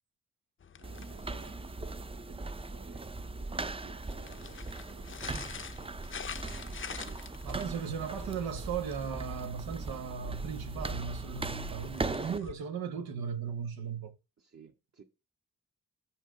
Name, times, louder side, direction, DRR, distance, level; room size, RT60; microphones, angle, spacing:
sound 1, 0.6-1.8 3.9-9.5 11.8-12.5, left 7 dB, 35° left, 0.5 m, -46 dB
sound 2, 0.8-12.4, right 3 dB, 15° right, 0.5 m, -39 dB
voice 1, 0.8-8.4 14.4-15.0, right 5 dB, 45° right, 1.3 m, -56 dB
voice 2, 7.4-14.1, right 7 dB, 90° right, 0.9 m, -37 dB
5.8 x 5.6 x 4.7 m
supercardioid pair, 40°, 35 cm